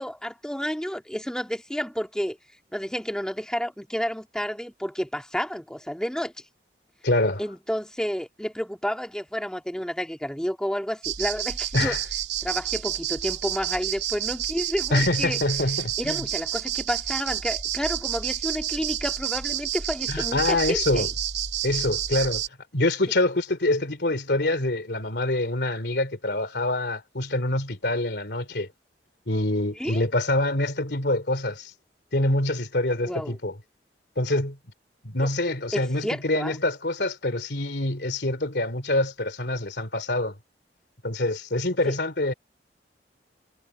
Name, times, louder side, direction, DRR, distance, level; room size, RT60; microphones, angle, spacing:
voice 1, 0.0-2.4 2.7-6.3 7.4-12.0 12.4-15.4 16.0-21.1 29.7-30.0 33.0-33.4 35.2-35.3 35.7-36.5 41.9-42.0, equal, 5° left, 2.2 m, -30 dB
voice 2, 7.0-7.4 11.7-12.0 14.9-16.3 20.1-21.1 21.6-22.4 22.7-28.7 29.3-31.7 32.1-33.6 34.2-34.6 35.0-40.3 41.0-42.3, left 2 dB, 65° left, 3.2 m, -25 dB
sound 1, 11.0-22.5, right 11 dB, 65° right, 3.1 m, -30 dB
head